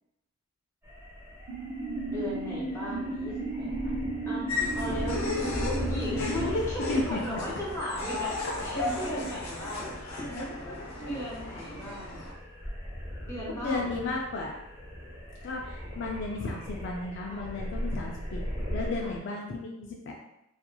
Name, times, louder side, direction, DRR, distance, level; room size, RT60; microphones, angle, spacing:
sound 1, 0.8-19.2, equal, 15° right, 0.8 m, -39 dB
sound 2, 1.5-6.5, right 2 dB, 60° right, 0.5 m, -34 dB
voice 1, 2.1-4.5 4.7-5.2 5.5-9.9 11.0-12.2 13.2-14.0 17.3-17.4 19.0-19.1, equal, 15° left, -7 dB, 0.7 m, -37 dB
sound 3, 4.5-12.3, left 2 dB, 80° left, 0.7 m, -35 dB
voice 2, 6.2-6.6 6.9-7.4 8.4-8.5 13.6-14.6 15.4-18.4 18.7-20.1, left 3 dB, 55° left, -1 dB, 0.3 m, -33 dB
2.9 x 2.4 x 2.2 m, 0.85 s
head